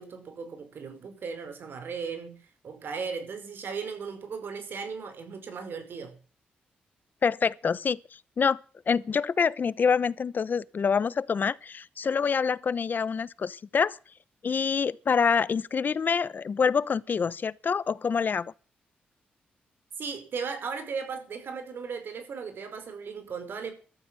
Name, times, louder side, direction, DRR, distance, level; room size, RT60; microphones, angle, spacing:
voice 1, 0.0-6.2 20.0-23.7, right 5 dB, 65° right, 5.1 m, -37 dB
voice 2, 7.2-8.6 8.9-14.0 14.4-18.5, left 6 dB, 55° left, 0.9 m, -26 dB
15.0 x 13.0 x 6.2 m
supercardioid pair, 50°, 4 cm